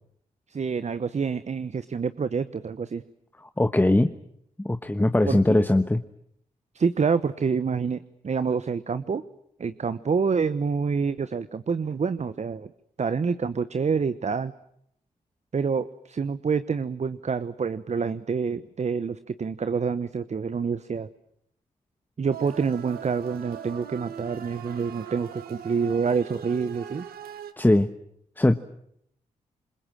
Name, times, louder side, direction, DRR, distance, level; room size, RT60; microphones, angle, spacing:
voice 1, 0.5-3.0 5.3-5.6 6.7-9.2 9.6-12.7 13.0-14.5 15.5-21.1 22.2-27.1, right 5 dB, 50° right, 13 dB, 1.0 m, -27 dB
voice 2, 3.6-4.1 4.6-6.0 27.6-27.9 28.4-28.5, left 1 dB, 10° left, 9 dB, 1.2 m, -20 dB
sound 1, 22.3-27.5, right 9 dB, 85° right, 1.5 m, -41 dB
27.0 x 22.0 x 7.6 m, 0.72 s
supercardioid pair, 45°, 15 cm